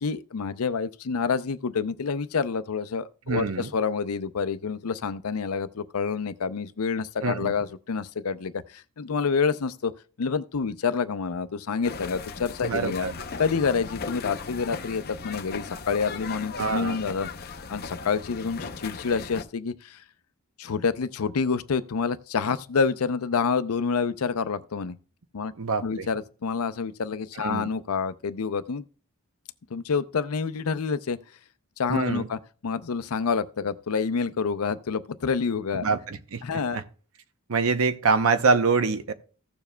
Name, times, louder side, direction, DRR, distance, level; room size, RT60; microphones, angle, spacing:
voice 1, 0.0-9.9 10.2-13.1 13.4-20.0 20.6-25.0 25.3-25.5 25.8-28.8 29.7-31.2 31.8-35.9 36.4-36.8, left 5 dB, 85° left, 0.5 m, -28 dB
voice 2, 3.3-3.7 7.2-7.5 12.6-13.1 16.6-17.0 25.6-26.1 27.4-27.7 31.9-32.3 35.8-36.8 37.5-39.1, right 4 dB, 75° right, 0.7 m, -25 dB
sound 1, 11.8-19.4, left 4 dB, 45° left, 0.6 m, -37 dB
15.5 x 7.0 x 2.2 m
head